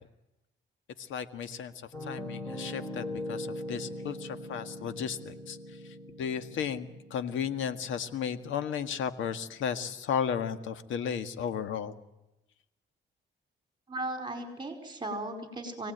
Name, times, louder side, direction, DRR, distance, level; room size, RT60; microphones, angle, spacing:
voice 1, 1.1-1.7 2.0-5.6 6.2-11.9, left 7 dB, 80° left, 10 dB, 1.8 m, -34 dB
Piano, 1.9-9.8, left 1 dB, 15° left, 7.4 m, -42 dB
voice 2, 13.9-15.9, right 2 dB, 20° right, 6 dB, 5.0 m, -36 dB
26.0 x 18.0 x 9.3 m, 0.96 s
cardioid pair, 90°, 20 cm